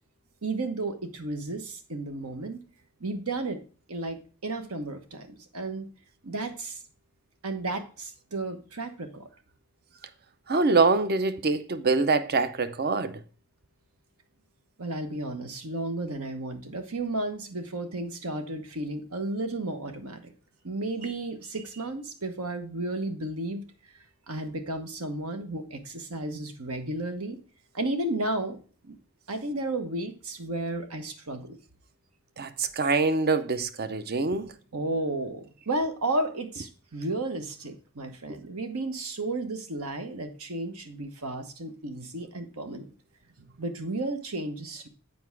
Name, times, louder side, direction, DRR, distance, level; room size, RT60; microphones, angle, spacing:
voice 1, 0.4-2.6 3.0-3.6 3.9-5.9 6.2-6.8 7.4-9.3 14.8-20.3 20.6-23.6 24.3-27.4 27.7-28.6 28.8-29.0 29.3-31.6 34.7-42.9 43.6-44.9, right 2 dB, 75° right, 1.2 m, -33 dB
voice 2, 10.5-13.2 32.4-34.5, right 3 dB, 45° right, 0.6 m, -24 dB
8.0 x 4.7 x 4.6 m
head